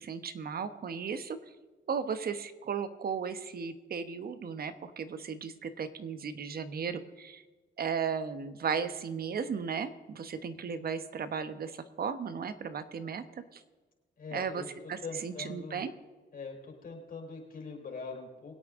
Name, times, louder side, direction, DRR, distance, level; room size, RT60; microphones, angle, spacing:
voice 1, 0.0-1.4 1.9-7.4 7.8-13.2 13.5-13.6 14.3-14.6 14.9-15.9, right 6 dB, 50° right, 11 dB, 1.2 m, -35 dB
voice 2, 14.2-15.9 16.3-18.6, left 4 dB, 45° left, 0 dB, 4.0 m, -43 dB
23.0 x 8.5 x 3.8 m, 1.3 s
cardioid pair, 90°, 20 cm